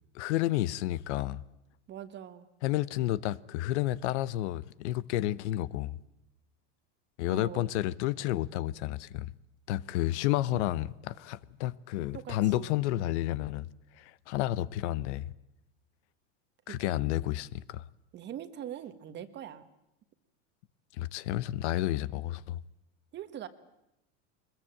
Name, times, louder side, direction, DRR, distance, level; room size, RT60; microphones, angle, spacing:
voice 1, 0.1-1.4 2.6-6.0 7.2-9.3 9.7-13.7 14.0-15.3 16.7-17.8 20.9-22.6, left 15 dB, 70° left, 0.9 m, -31 dB
voice 2, 1.9-2.5 7.3-7.7 10.5-10.7 12.1-12.7 16.7-17.0 18.1-19.7 23.1-23.5, right 10 dB, 30° right, 1.4 m, -42 dB
22.5 x 21.0 x 8.8 m
supercardioid pair, 145°, 36 cm